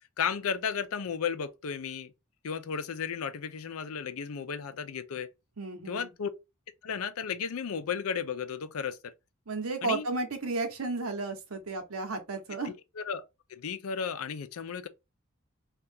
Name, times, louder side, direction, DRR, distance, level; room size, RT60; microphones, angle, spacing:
voice 1, 0.2-2.1 2.4-5.3 5.9-6.3 6.8-9.0 9.8-10.1 12.7-13.2 13.5-14.9, left 6 dB, 80° left, 0.5 m, -34 dB
voice 2, 5.6-6.1 9.5-12.7, right 3 dB, 85° right, 0.9 m, -33 dB
2.8 x 2.4 x 3.5 m
head